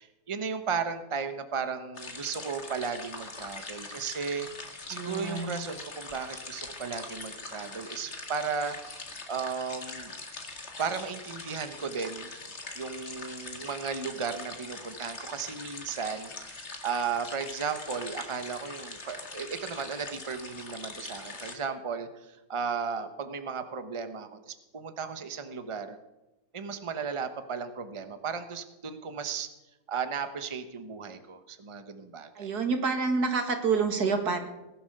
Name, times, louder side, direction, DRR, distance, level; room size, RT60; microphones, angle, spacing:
voice 1, 0.0-8.8 9.3-10.1 10.8-12.3 12.7-26.0 26.5-29.5 29.9-32.5, right 6 dB, 20° right, 9 dB, 1.0 m, -35 dB
sound 1, 1.9-21.6, left 3 dB, 45° left, 2.3 m, -42 dB
voice 2, 4.9-5.6 32.4-34.4, right 4 dB, 90° right, 6 dB, 2.5 m, -28 dB
19.5 x 11.0 x 6.7 m, 0.99 s
omnidirectional pair, 1.6 m